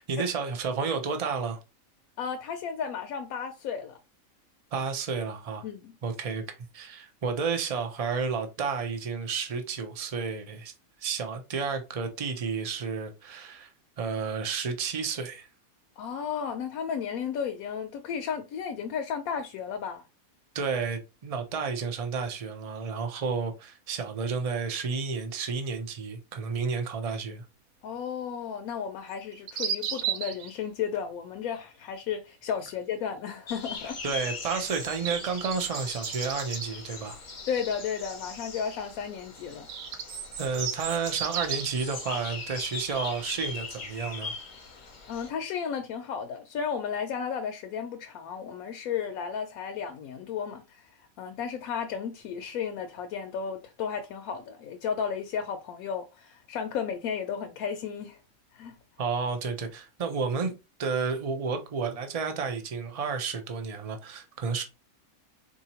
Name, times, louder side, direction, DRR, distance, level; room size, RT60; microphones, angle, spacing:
voice 1, 0.0-1.6 4.7-5.6 6.0-10.7 11.0-13.7 14.0-15.5 20.5-27.4 34.0-37.2 40.4-44.3 59.0-60.5 60.8-64.6, right 5 dB, 60° right, 0.3 m, -31 dB
voice 2, 2.2-4.0 5.6-5.9 16.0-20.0 27.8-34.0 37.5-39.7 45.1-58.2 58.5-58.7, left 7 dB, 80° left, 1.0 m, -33 dB
sound 1, 29.1-30.5 34.2-36.7 39.4-41.8, right 8 dB, 85° right, 1.1 m, -34 dB
sound 2, 33.5-45.3, left 4 dB, 40° left, 0.7 m, -40 dB
4.1 x 2.7 x 2.8 m
omnidirectional pair, 1.5 m